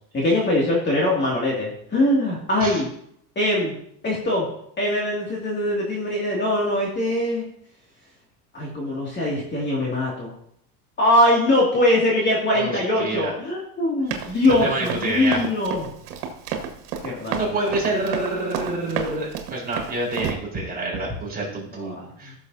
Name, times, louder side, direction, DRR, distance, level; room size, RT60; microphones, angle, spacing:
voice 1, 0.1-2.9 3.4-3.7 4.0-4.4 4.8-7.4 8.5-10.3 11.0-15.9 17.0-17.7 21.7-22.3, left 1 dB, 25° left, -4 dB, 2.4 m, -22 dB
voice 2, 13.0-13.3 14.6-15.4 17.2-22.4, right 2 dB, 20° right, -4 dB, 4.5 m, -27 dB
Run, 14.1-20.3, right 8 dB, 85° right, 1.8 m, -30 dB
15.0 x 6.9 x 2.8 m, 0.70 s
supercardioid pair, 130°, 45 cm